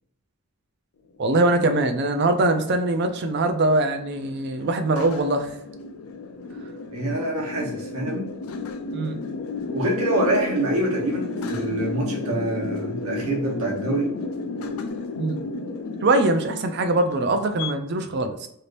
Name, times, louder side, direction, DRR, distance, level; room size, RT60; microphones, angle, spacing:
voice 1, 1.2-5.5 8.9-9.2 15.2-15.4 16.0-18.5, right 2 dB, 50° right, 7 dB, 0.4 m, -22 dB
sound 1, 1.9-17.7, left 3 dB, 70° left, 0.4 m, -33 dB
voice 2, 6.9-8.3 9.7-14.1, right 1 dB, 80° right, -1 dB, 1.0 m, -26 dB
3.3 x 2.8 x 2.5 m, 0.74 s
head